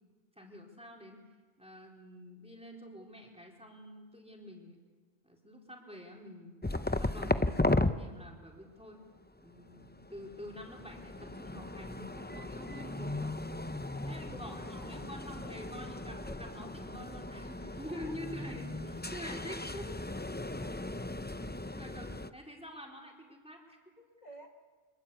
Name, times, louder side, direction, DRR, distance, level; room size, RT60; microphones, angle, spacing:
voice 1, 0.4-1.2 1.6-4.8 5.2-6.5 7.0-9.0 9.4-13.4 14.1-20.0 21.7-24.1, equal, 5° right, 0 dB, 4.2 m, -47 dB
sound 1, 6.6-7.9 9.6-22.3, left 2 dB, 10° left, 0.5 m, -36 dB
voice 2, 13.8-14.5 14.8-15.1 15.4-15.8 16.2-16.7 17.9-18.2 20.6-21.1 24.2-24.5, equal, 40° left, 2 dB, 1.8 m, -54 dB
25.5 x 21.5 x 8.4 m, 1.4 s
omnidirectional pair, 1.1 m